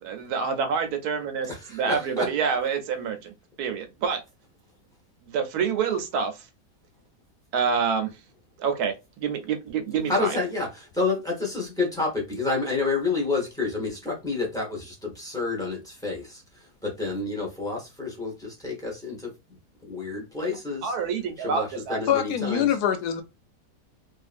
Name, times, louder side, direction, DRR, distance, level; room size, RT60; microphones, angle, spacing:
voice 1, 0.0-3.3 3.6-4.2 5.2-6.3 7.5-8.1 8.6-10.4 20.4-20.5 20.8-22.0, right 6 dB, 75° right, 1.1 m, -27 dB
voice 2, 1.5-2.3 10.1-19.3 19.8-20.9 21.4-22.7, left 3 dB, 5° left, 0.7 m, -29 dB
voice 3, 22.1-23.2, left 10 dB, 80° left, 1.1 m, -24 dB
2.8 x 2.5 x 2.5 m
omnidirectional pair, 1.7 m